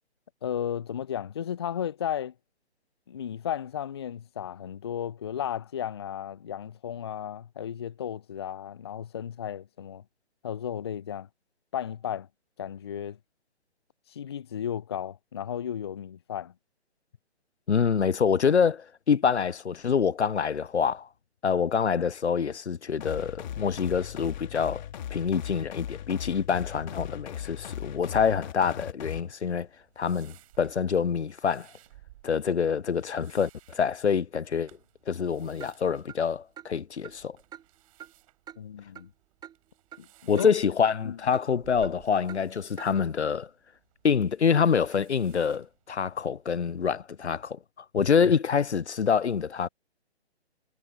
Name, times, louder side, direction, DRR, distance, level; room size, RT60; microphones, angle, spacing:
voice 1, 0.4-2.3 3.1-10.0 10.4-11.3 11.7-12.3 12.6-13.2 14.1-16.5 38.6-39.1 40.0-40.5 41.0-41.2 48.2-48.3, left 9 dB, 25° left, 0.4 m, -34 dB
voice 2, 17.7-21.1 21.4-24.8 25.1-29.7 30.0-31.7 32.2-34.7 35.1-37.4 40.3-43.5 44.0-47.6 47.9-49.7, left 6 dB, 85° left, 0.6 m, -26 dB
sound 1, 23.0-29.2, left 10 dB, 45° left, 3.1 m, -38 dB
sound 2, 29.6-46.6, right 17 dB, 30° right, 5.0 m, -59 dB
Clock, 35.6-35.7 36.1-36.2 36.6-36.7 37.0-37.2 37.5-37.6 38.0-38.1 38.5-38.6 39.0-39.1 39.4-39.6 39.9-40.0 40.4-40.5 40.9-41.0 41.3-41.5 41.8-41.9 42.3-42.4 42.8-42.9, right 10 dB, 10° right, 4.6 m, -44 dB
figure-of-eight pair, 135°, 33 cm